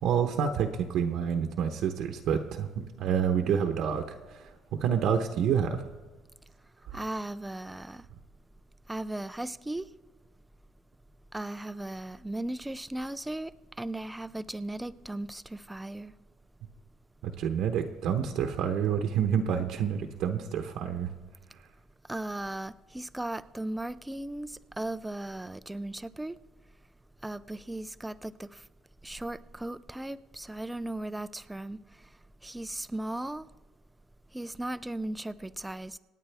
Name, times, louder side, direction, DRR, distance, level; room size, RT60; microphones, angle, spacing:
voice 1, 0.0-4.5 4.8-5.9 6.9-7.0 17.2-21.1, right 8 dB, 65° right, 4 dB, 0.9 m, -28 dB
voice 2, 6.9-8.0 8.9-9.9 11.3-13.5 13.8-16.1 22.1-26.3 27.2-28.5 29.0-31.8 32.4-33.4 34.3-36.0, right 1 dB, 5° right, 14 dB, 0.4 m, -37 dB
26.5 x 9.2 x 3.4 m, 1.3 s
cardioid pair, 135°, 0 cm